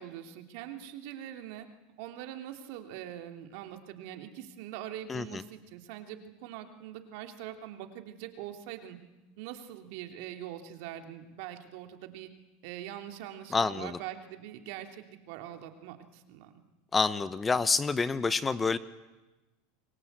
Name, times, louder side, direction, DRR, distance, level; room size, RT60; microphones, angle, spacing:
voice 1, 0.0-1.7 2.0-9.0 9.4-12.3 12.6-16.6, right 11 dB, 65° right, 5 dB, 3.1 m, -43 dB
voice 2, 13.5-14.0 16.9-18.8, left 4 dB, 15° left, 14 dB, 1.1 m, -27 dB
29.5 x 23.5 x 8.2 m, 1.1 s
supercardioid pair, 120°, 0 cm